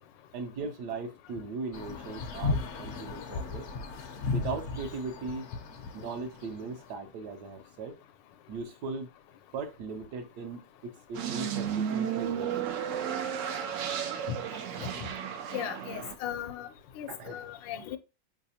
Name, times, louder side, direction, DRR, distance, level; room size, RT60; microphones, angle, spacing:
voice 1, 0.3-3.7 4.3-5.5 5.9-8.0 8.5-9.1 9.5-12.7 14.7-14.9 17.1-17.5, right 4 dB, 75° right, 1.2 m, -38 dB
sound 1, 1.7-6.8, left 3 dB, 65° left, 0.7 m, -35 dB
sound 2, 11.1-16.2, right 8 dB, 90° right, 0.6 m, -33 dB
voice 2, 15.5-16.7 17.0-18.0, left 10 dB, 85° left, 1.3 m, -37 dB
4.7 x 3.3 x 2.7 m
omnidirectional pair, 1.9 m